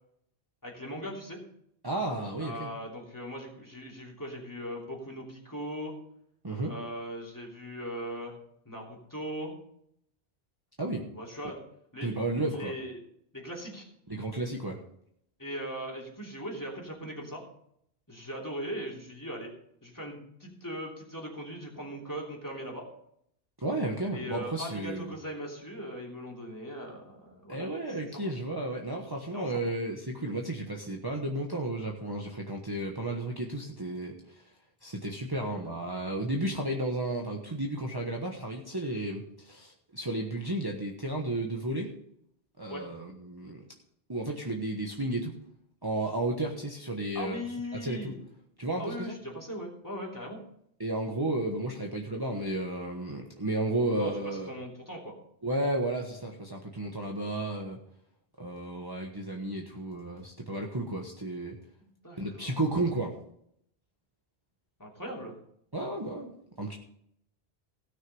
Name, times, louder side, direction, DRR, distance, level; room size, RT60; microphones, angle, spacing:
voice 1, 0.6-1.4 2.4-5.9 6.6-8.3 8.6-9.5 11.1-11.6 11.9-12.1 12.5-13.0 13.3-13.9 15.4-17.4 18.1-19.5 19.8-22.9 24.1-28.3 29.3-29.7 35.5-35.8 42.7-42.8 47.1-48.2 48.8-50.4 54.0-55.2 61.8-62.6 64.8-65.4, equal, 20° left, -2 dB, 3.1 m, -39 dB
voice 2, 1.8-2.7 6.4-6.7 10.8-11.0 12.0-12.7 14.1-14.8 23.6-25.1 27.5-34.1 34.8-41.9 42.6-43.6 44.1-45.3 45.8-47.4 47.7-48.1 48.6-49.1 50.8-54.5 55.4-57.8 58.4-61.6 62.2-63.1 65.7-66.7, right 2 dB, 20° right, -1 dB, 1.2 m, -33 dB
16.5 x 6.4 x 5.5 m, 0.71 s
omnidirectional pair, 1.1 m